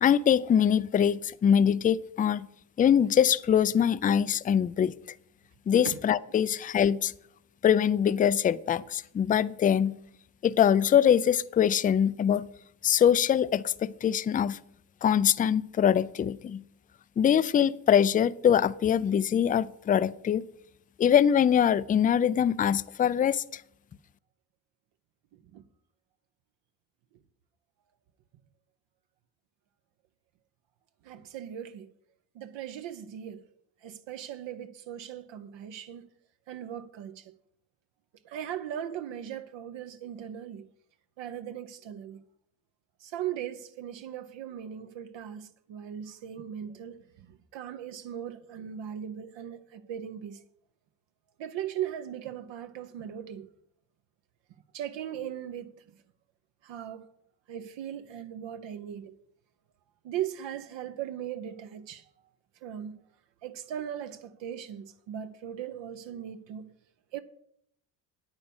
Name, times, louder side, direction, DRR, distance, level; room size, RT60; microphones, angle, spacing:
voice 1, 0.0-2.5 2.8-4.9 5.7-7.1 7.6-10.0 10.4-12.5 12.8-14.6 15.0-16.6 17.2-20.4 21.0-23.6, left 8 dB, 20° left, 0.3 m, -23 dB
voice 2, 31.0-31.9 32.3-33.4 33.8-36.1 36.5-37.3 38.2-40.7 41.2-42.2 43.0-50.4 51.4-53.5 54.7-55.8 56.6-57.1 57.5-59.2 60.0-62.1 62.6-63.0 63.4-66.7 67.1-67.2, right 10 dB, 65° right, 0.9 m, -38 dB
9.3 x 8.9 x 5.4 m
supercardioid pair, 85°, 47 cm